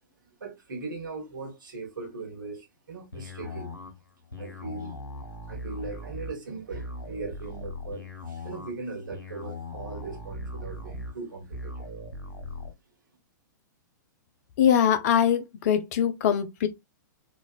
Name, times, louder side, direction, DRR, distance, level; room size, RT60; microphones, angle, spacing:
voice 1, 0.4-3.8 4.4-5.0 5.5-11.9 12.6-12.7, right 3 dB, 75° right, 1.4 m, -39 dB
sound 1, 3.1-12.7, left 1 dB, 90° left, 1.0 m, -39 dB
voice 2, 14.6-16.7, left 9 dB, 50° left, 0.6 m, -22 dB
3.9 x 2.4 x 2.4 m
figure-of-eight pair, 110°, 11 cm